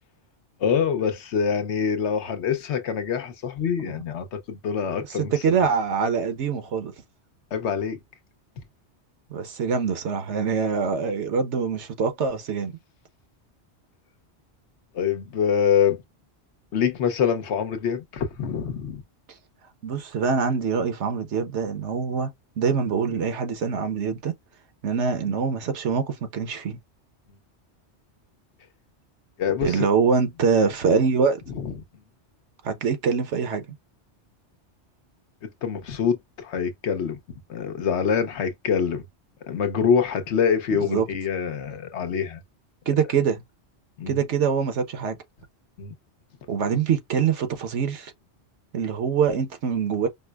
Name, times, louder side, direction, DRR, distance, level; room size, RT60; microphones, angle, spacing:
voice 1, 0.6-5.7 7.5-8.0 14.9-16.0 16.7-19.0 29.4-29.8 31.5-31.7 35.4-37.2 37.5-39.0 39.5-42.4 44.0-44.2 45.8-45.9, left 7 dB, 75° left, 1.1 m, -25 dB
voice 2, 5.1-6.9 9.3-12.7 19.8-22.3 22.6-24.3 24.8-26.8 29.6-31.4 32.6-33.7 40.8-41.1 42.9-43.4 44.1-45.2 46.5-48.1 48.7-50.1, right 6 dB, 80° right, 1.2 m, -24 dB
5.2 x 2.0 x 2.3 m
omnidirectional pair, 1.2 m